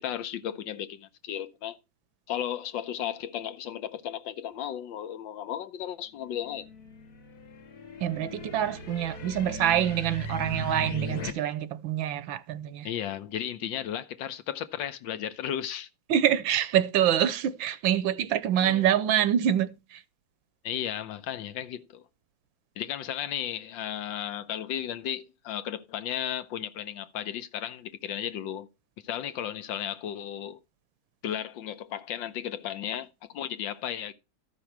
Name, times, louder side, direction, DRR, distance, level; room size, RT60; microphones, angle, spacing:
voice 1, 0.0-1.8 2.3-6.7 12.8-15.9 18.6-18.9 20.6-22.0 22.8-28.7 29.0-30.6 31.2-34.1, left 10 dB, 75° left, 1.5 m, -34 dB
sound 1, 6.3-11.3, equal, 55° left, 1.8 m, -38 dB
voice 2, 8.0-12.9 16.1-20.0, right 10 dB, 85° right, 1.5 m, -26 dB
13.0 x 6.2 x 4.5 m
omnidirectional pair, 2.1 m